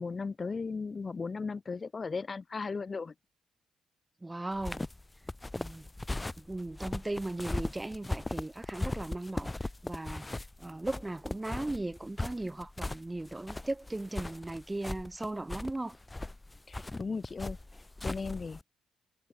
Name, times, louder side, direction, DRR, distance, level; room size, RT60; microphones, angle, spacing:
voice 1, 0.0-3.1 16.7-17.6 18.0-18.6, left 4 dB, 35° left, 0.8 m, -36 dB
voice 2, 4.2-4.8 5.5-5.9 6.4-16.0, right 2 dB, 15° right, 1.4 m, -37 dB
sound 1, 4.5-18.6, left 2 dB, 15° left, 1.3 m, -38 dB
cardioid pair, 90°, 0 cm